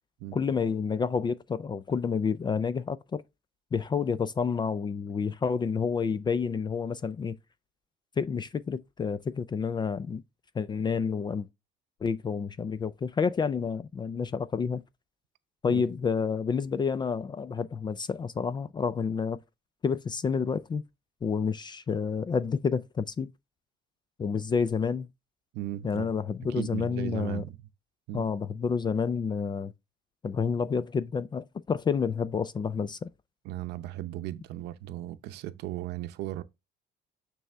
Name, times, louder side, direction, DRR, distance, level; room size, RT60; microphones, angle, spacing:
voice 1, 0.3-3.2 3.7-7.4 8.2-10.2 10.6-11.5 12.0-14.8 15.6-19.4 19.8-20.8 21.2-23.3 24.2-25.1 25.8-27.4 28.1-29.7 30.2-33.1, left 6 dB, 25° left, 0.3 m, -29 dB
voice 2, 25.5-26.1 26.5-27.6 28.1-28.3 33.4-36.4, right 14 dB, 85° right, 0.7 m, -36 dB
9.0 x 3.4 x 3.4 m
cardioid pair, 110°, 17 cm